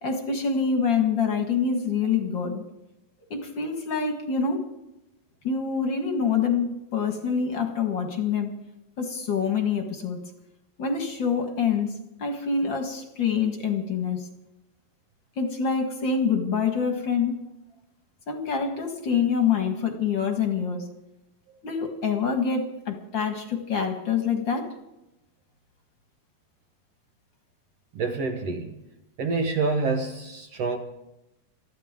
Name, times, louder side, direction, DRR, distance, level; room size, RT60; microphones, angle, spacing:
voice 1, 0.0-2.6 3.3-4.7 5.4-8.5 9.0-10.2 10.8-14.3 15.4-17.4 18.3-20.9 21.6-24.7, left 6 dB, 45° left, 4 dB, 1.8 m, -26 dB
voice 2, 27.9-28.8 29.2-30.8, right 3 dB, 60° right, 4 dB, 1.9 m, -27 dB
24.5 x 14.5 x 3.7 m, 0.91 s
omnidirectional pair, 4.1 m